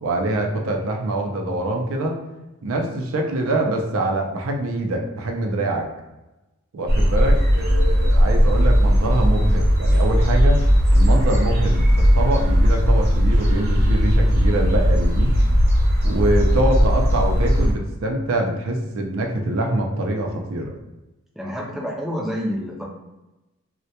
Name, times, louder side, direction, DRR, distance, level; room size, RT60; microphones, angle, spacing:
voice 1, 0.0-2.2 2.6-5.9 6.7-10.6 10.9-15.3 16.0-20.7, right 1 dB, 90° right, 2 dB, 0.4 m, -24 dB
sound 1, 6.9-17.7, equal, 50° right, 0.6 m, -17 dB
voice 2, 21.4-22.8, equal, ahead, -3 dB, 0.3 m, -28 dB
2.1 x 2.1 x 2.7 m, 1.0 s
head